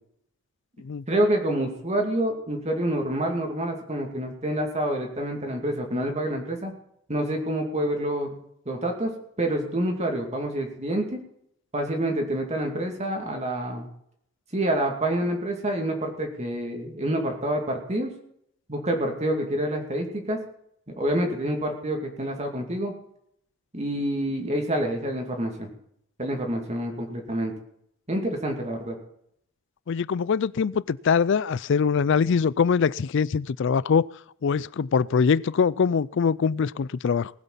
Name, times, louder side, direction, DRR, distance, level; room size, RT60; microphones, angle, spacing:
voice 1, 1.1-6.7 7.1-8.4 8.7-9.1 9.4-11.2 11.7-13.9 14.5-18.1 18.7-20.4 21.0-22.9 23.7-25.7 26.2-27.5 28.1-29.0, right 1 dB, 35° right, 2 dB, 2.6 m, -27 dB
voice 2, 29.9-34.1 34.4-37.3, left 6 dB, 65° left, 21 dB, 0.4 m, -23 dB
19.5 x 8.2 x 5.7 m, 0.69 s
head